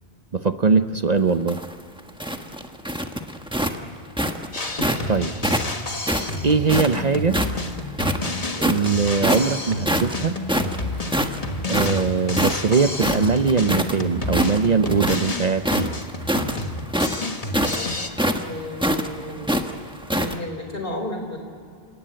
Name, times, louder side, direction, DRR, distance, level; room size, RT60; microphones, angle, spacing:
voice 1, 0.3-1.6 5.1-5.3 6.4-7.4 8.6-10.4 11.7-16.0, right 4 dB, 45° right, 9 dB, 0.8 m, -21 dB
sound 1, 1.3-5.1 5.4-7.6 7.9-8.9 9.2-9.6 9.9-14.0 14.2-15.3 15.6-20.4, equal, 5° right, 1.2 m, -24 dB
Drum kit, 4.5-18.1, left 2 dB, 35° left, 1.5 m, -30 dB
voice 2, 8.5-8.9 18.5-19.7 20.1-21.4, left 1 dB, 60° left, 4 dB, 4.5 m, -33 dB
29.0 x 18.0 x 8.9 m, 2.3 s
omnidirectional pair, 1.1 m